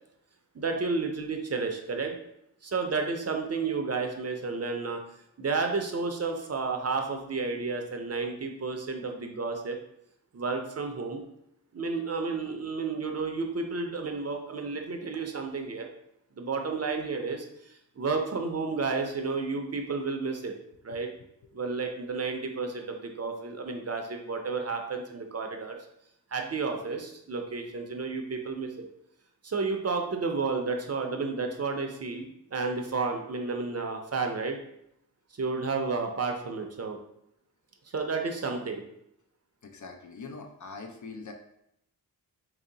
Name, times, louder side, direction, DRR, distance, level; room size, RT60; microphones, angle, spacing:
voice 1, 0.5-2.2 2.6-5.0 5.4-9.8 10.3-11.2 11.7-15.9 16.3-20.5 20.8-21.1 21.5-25.8 26.3-28.8 29.4-34.6 35.4-37.0 37.9-38.8, right 4 dB, 40° right, 3 dB, 0.5 m, -31 dB
voice 2, 39.6-41.3, left 4 dB, 50° left, 4 dB, 0.5 m, -43 dB
3.0 x 2.7 x 3.9 m, 0.77 s
wide cardioid pair, 70°, 39 cm